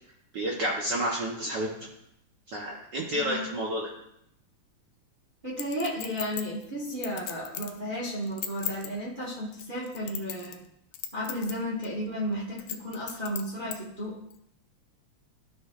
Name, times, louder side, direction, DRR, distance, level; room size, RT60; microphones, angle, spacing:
voice 1, 0.3-1.7 2.5-3.9, right 1 dB, 75° right, -2 dB, 0.9 m, -30 dB
voice 2, 3.1-3.6 5.4-10.6 11.1-14.2, equal, 55° right, -5 dB, 0.5 m, -33 dB
Chink clink, 5.6-7.8 8.2-8.9 9.5-10.7 10.9-11.5 11.8-11.9 12.6-13.8 14.3-14.4, left 10 dB, 75° left, 1.6 m, -36 dB
12.5 x 6.0 x 2.4 m, 0.77 s
omnidirectional pair, 3.3 m